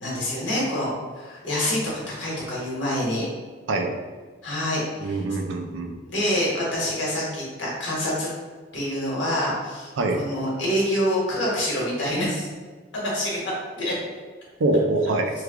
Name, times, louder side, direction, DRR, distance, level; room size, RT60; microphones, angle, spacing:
voice 1, 0.0-3.2 4.4-5.2 6.0-8.3 8.7-12.5 12.9-13.9, left 1 dB, 70° left, -5 dB, 1.2 m, -26 dB
voice 2, 5.0-6.0 10.0-10.2 14.6-15.3, right 2 dB, 85° right, 4 dB, 0.4 m, -24 dB
3.1 x 2.3 x 3.5 m, 1.5 s
head